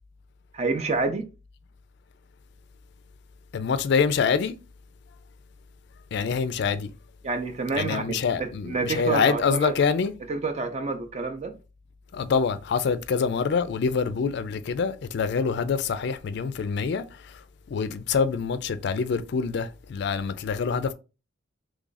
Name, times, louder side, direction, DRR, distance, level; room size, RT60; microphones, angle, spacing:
voice 1, 0.5-1.2 7.2-8.0 8.4-9.7 10.3-11.5, right 3 dB, 35° right, 0.4 m, -28 dB
voice 2, 3.5-4.5 6.1-6.9 7.8-10.1 12.1-17.0 17.7-20.9, left 5 dB, 60° left, 0.3 m, -25 dB
3.1 x 2.4 x 3.9 m
head